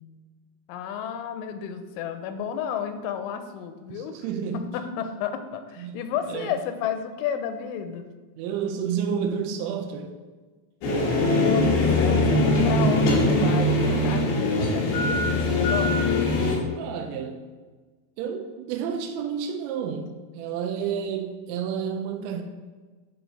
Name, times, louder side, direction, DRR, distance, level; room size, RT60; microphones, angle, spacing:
voice 1, 0.7-4.2 4.5-8.1 11.1-16.0, left 8 dB, 90° left, 8 dB, 3.1 m, -32 dB
voice 2, 3.9-4.6 5.8-6.5 8.4-10.1 16.7-17.4 18.2-22.4, right 7 dB, 85° right, 4 dB, 2.9 m, -30 dB
sound 1, 10.8-16.6, left 1 dB, 65° left, 2.8 m, -21 dB
10.0 x 3.6 x 5.3 m, 1.4 s
omnidirectional pair, 5.5 m